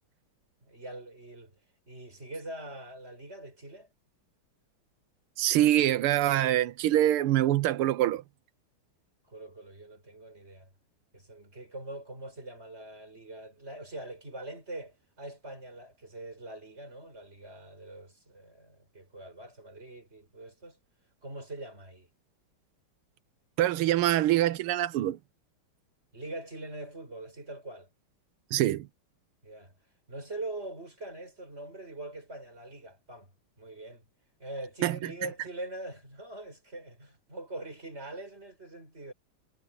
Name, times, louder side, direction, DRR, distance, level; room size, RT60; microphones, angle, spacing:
voice 1, 0.6-1.5 1.9-3.9 9.3-10.7 11.1-20.8 21.2-22.1 26.1-27.9 29.4-29.7 30.1-33.3 33.6-34.1 34.4-39.1, right 2 dB, 30° right, 7.3 m, -43 dB
voice 2, 5.4-8.2 23.6-25.2 28.5-28.9 34.8-35.1, right 13 dB, 90° right, 1.7 m, -25 dB
omnidirectional pair, 2.3 m